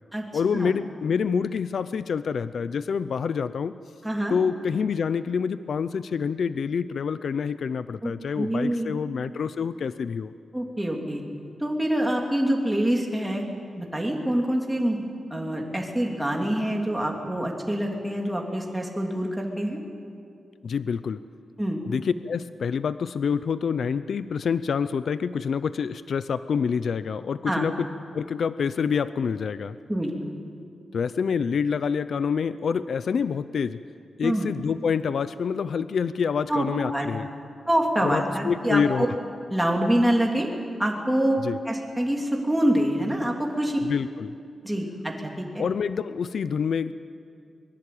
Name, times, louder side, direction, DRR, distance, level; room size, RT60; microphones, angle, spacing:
voice 1, 0.3-3.7 4.3-10.3 20.6-21.2 21.9-27.9 28.1-29.8 30.9-33.8 34.2-37.3 38.0-39.1 41.4-41.6 43.9-44.3 45.6-46.9, left 6 dB, 60° left, 13 dB, 0.6 m, -27 dB
voice 2, 4.0-4.4 8.0-9.0 10.5-11.2 11.6-13.4 13.7-15.0 15.3-19.8 21.6-21.8 27.4-27.7 29.9-30.3 34.2-34.5 36.5-36.6 36.9-37.1 37.7-39.1 39.5-40.5 40.8-41.4 41.7-43.8 44.6-45.4, right 1 dB, 5° right, 0 dB, 3.1 m, -25 dB
23.5 x 22.5 x 8.6 m, 2.3 s
wide cardioid pair, 160°, 0 cm